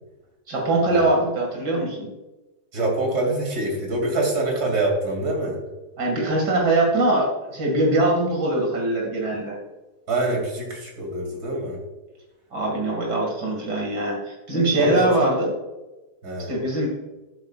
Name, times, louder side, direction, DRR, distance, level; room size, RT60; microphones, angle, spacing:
voice 1, 0.5-2.1 6.0-9.6 12.5-15.5 16.5-16.9, right 2 dB, 85° right, -1 dB, 2.7 m, -22 dB
voice 2, 2.7-5.6 10.1-11.8 14.7-15.3 16.2-16.5, right 2 dB, 70° right, 0 dB, 3.1 m, -25 dB
13.0 x 8.0 x 2.4 m, 1.1 s
omnidirectional pair, 1.7 m